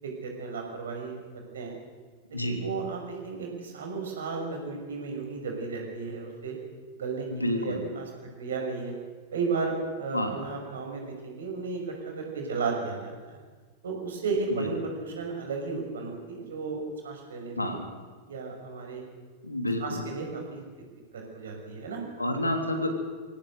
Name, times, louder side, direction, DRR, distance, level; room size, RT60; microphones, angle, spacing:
voice 1, 0.0-1.7 2.3-6.5 7.0-7.3 7.6-8.9 9.3-13.4 13.8-17.8 18.3-19.0 19.8-20.6 21.1-22.0, right 4 dB, 65° right, 1 dB, 6.0 m, -34 dB
voice 2, 7.3-7.8 10.1-10.4 14.6-14.7 17.6-17.9 19.4-20.1 22.2-23.0, left 1 dB, 85° left, 5 dB, 3.0 m, -29 dB
23.5 x 17.0 x 8.1 m, 1.4 s
figure-of-eight pair, 90°, 0 cm